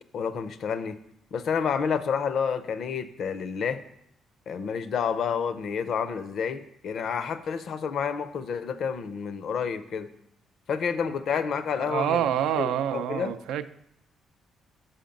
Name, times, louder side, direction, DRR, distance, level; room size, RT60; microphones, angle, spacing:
voice 1, 0.1-1.0 1.3-3.8 4.5-10.1 10.7-12.3 12.6-13.3, left 6 dB, 65° left, 12 dB, 0.5 m, -29 dB
voice 2, 11.8-13.7, right 10 dB, 90° right, 10 dB, 0.3 m, -27 dB
5.7 x 5.0 x 5.1 m, 0.74 s
cardioid pair, 90°, 0 cm